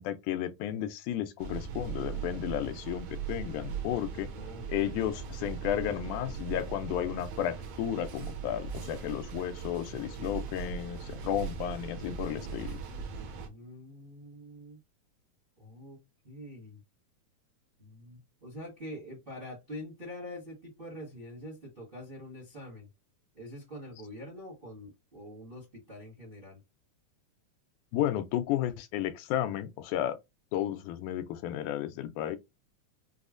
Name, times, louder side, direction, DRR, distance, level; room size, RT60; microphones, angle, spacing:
voice 1, 0.0-4.3 4.7-12.8 27.9-30.2 30.5-32.4, left 11 dB, 85° left, 2.0 m, -33 dB
sound 1, 1.4-13.5, right 6 dB, 70° right, 1.6 m, -39 dB
voice 2, 4.3-5.1 13.4-14.8 15.6-16.0 16.2-16.8 17.8-22.9 23.3-26.6, left 1 dB, 30° right, 1.0 m, -45 dB
5.4 x 2.0 x 2.4 m
omnidirectional pair, 3.5 m